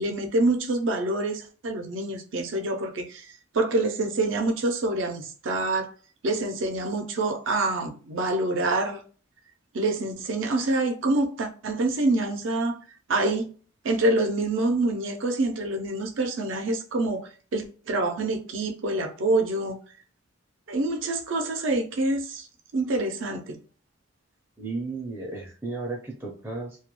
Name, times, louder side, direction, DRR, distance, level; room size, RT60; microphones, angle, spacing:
voice 1, 0.0-5.9 6.2-9.0 9.7-12.8 13.1-13.5 13.8-19.8 20.7-22.5 22.7-23.6, right 2 dB, 80° right, 0.5 m, -26 dB
voice 2, 24.6-26.8, right 3 dB, 10° right, 0.4 m, -34 dB
2.2 x 2.1 x 2.9 m
head